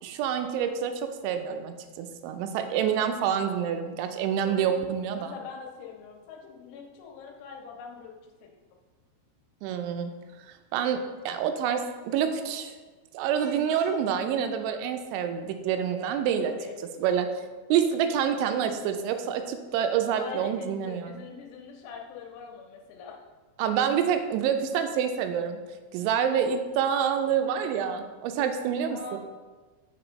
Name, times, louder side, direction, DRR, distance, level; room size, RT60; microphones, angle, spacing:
voice 1, 0.0-5.3 9.6-10.1 10.7-12.7 13.1-16.5 17.0-17.3 17.7-21.1 23.6-25.6 25.9-29.2, right 8 dB, 85° right, 7 dB, 2.9 m, -27 dB
voice 2, 4.4-8.5 16.4-16.8 20.2-23.2 28.9-29.2, left 5 dB, 85° left, 1 dB, 3.3 m, -43 dB
Vehicle horn car horn honking, 13.3-14.0, right 1 dB, 65° right, 2.1 m, -47 dB
6.4 x 6.1 x 3.1 m, 1.3 s
omnidirectional pair, 5.3 m